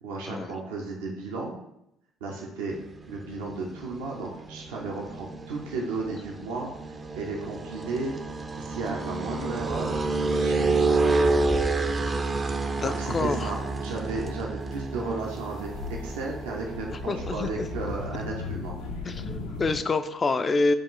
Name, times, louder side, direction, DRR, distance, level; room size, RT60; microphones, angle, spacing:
voice 1, 0.0-1.5 2.2-2.8 3.1-8.2 8.6-11.1 12.8-19.3, right 3 dB, 80° right, -1 dB, 0.6 m, -34 dB
sound 1, 2.7-18.3, right 3 dB, 30° right, 0.4 m, -30 dB
voice 2, 12.8-13.5 17.1-17.7 19.1-20.7, left 3 dB, 35° left, 10 dB, 0.3 m, -27 dB
sound 2, 13.0-19.8, left 4 dB, 80° left, 0.6 m, -39 dB
5.0 x 2.4 x 3.7 m, 0.81 s
hypercardioid pair, 60°, 0 cm